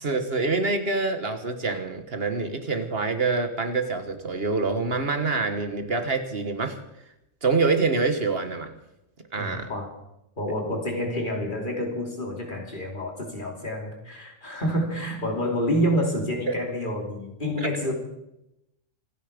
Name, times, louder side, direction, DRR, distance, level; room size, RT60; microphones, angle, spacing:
voice 1, 0.0-6.8 7.4-8.7 9.3-9.7 16.5-16.6 17.6-17.7, right 4 dB, 50° right, 8 dB, 1.8 m, -26 dB
voice 2, 9.4-9.9 10.4-17.9, equal, 40° left, 1 dB, 3.3 m, -28 dB
26.5 x 9.9 x 5.2 m, 0.87 s
omnidirectional pair, 1.3 m